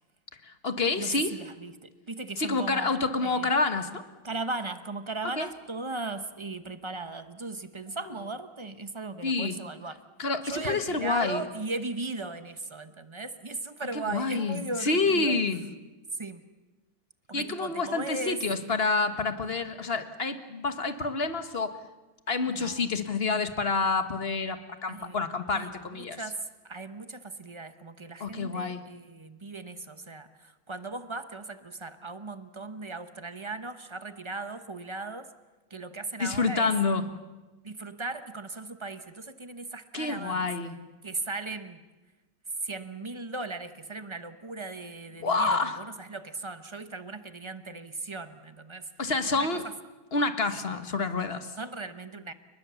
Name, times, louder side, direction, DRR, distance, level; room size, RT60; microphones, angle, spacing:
voice 1, 0.4-1.3 2.4-4.0 5.4-5.5 9.2-9.5 10.2-11.4 13.9-15.6 17.3-21.8 22.3-26.2 28.2-28.9 36.2-37.1 39.9-40.7 45.2-45.8 49.0-49.6 50.1-51.5, left 3 dB, 35° left, 9 dB, 1.4 m, -28 dB
voice 2, 1.0-3.5 4.2-10.0 10.4-15.4 16.1-16.4 17.3-18.4 22.5-22.9 24.9-25.2 25.5-25.7 26.0-35.3 35.7-36.7 37.6-40.5 41.0-41.8 42.6-48.9 49.3-49.5 50.7-50.8 51.6-52.3, right 3 dB, 30° right, 10 dB, 0.5 m, -37 dB
29.5 x 20.0 x 7.0 m, 1.2 s
omnidirectional pair, 2.2 m